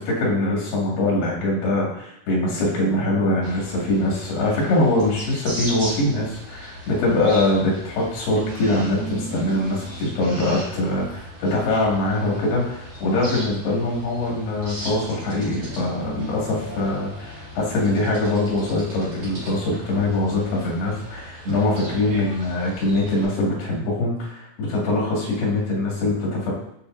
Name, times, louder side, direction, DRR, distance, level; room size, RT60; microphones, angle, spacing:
voice 1, 0.1-26.5, left 2 dB, 85° left, -4 dB, 3.9 m, -23 dB
sound 1, 2.5-5.6 8.3-11.6 15.7-18.8 21.4-22.2, right 3 dB, 90° right, 3.5 m, -37 dB
sound 2, 3.4-23.2, equal, 45° right, 2.9 m, -38 dB
10.0 x 4.7 x 2.5 m, 0.78 s
omnidirectional pair, 4.5 m